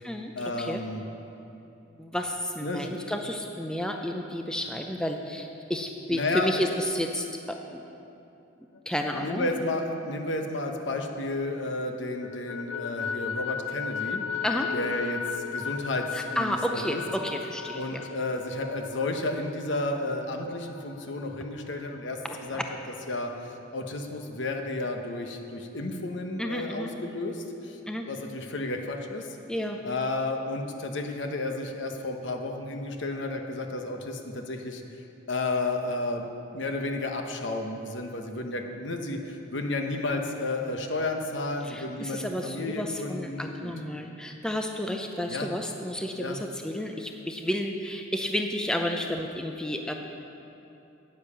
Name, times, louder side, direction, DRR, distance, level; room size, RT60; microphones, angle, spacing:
voice 1, 0.4-1.0 2.6-3.0 6.1-6.5 9.2-14.2 14.7-17.0 17.7-22.6 23.1-27.8 28.1-29.4 29.8-34.8 35.3-36.2 36.5-43.7 45.3-45.5 46.2-46.4, left 2 dB, 65° left, 4 dB, 1.0 m, -32 dB
voice 2, 2.0-7.8 8.9-9.5 14.4-14.7 16.1-18.0 22.2-22.6 26.4-26.9 27.9-28.1 29.5-29.8 41.6-49.9, equal, 5° left, 3 dB, 0.5 m, -31 dB
sound 1, 8.7-11.6 11.9-21.4, left 6 dB, 85° left, 0.5 m, -36 dB
9.9 x 9.4 x 6.9 m, 2.8 s
head